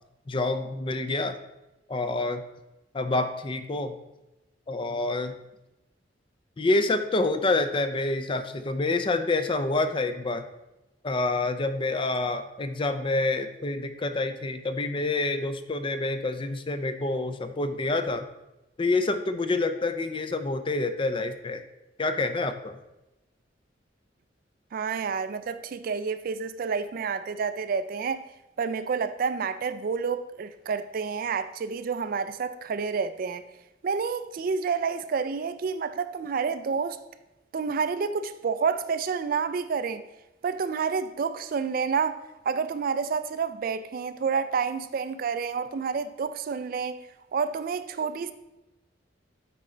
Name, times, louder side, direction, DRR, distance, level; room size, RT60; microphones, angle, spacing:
voice 1, 0.3-1.4 1.9-2.4 2.9-3.9 4.7-5.4 6.6-10.4 11.0-18.3 18.8-21.6 22.0-22.8, left 2 dB, 30° left, 0.4 m, -27 dB
voice 2, 24.7-28.3 28.6-33.4 33.8-37.0 37.5-40.0 40.4-47.0 47.3-48.3, right 5 dB, 50° right, 0.4 m, -29 dB
8.8 x 4.3 x 3.8 m
head